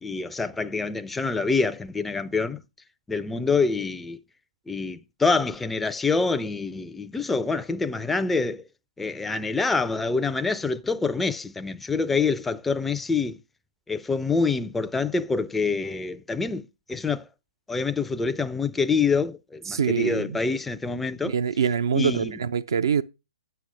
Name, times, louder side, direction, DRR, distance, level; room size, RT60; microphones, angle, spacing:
voice 1, 0.0-2.6 3.1-4.2 4.7-8.6 9.0-13.4 13.9-17.2 17.7-21.3 21.9-22.4, left 4 dB, 5° left, 0.4 m, -26 dB
voice 2, 19.7-20.4 21.2-23.0, right 7 dB, 60° right, 0.5 m, -24 dB
10.0 x 7.9 x 3.3 m
figure-of-eight pair, 120°, 2 cm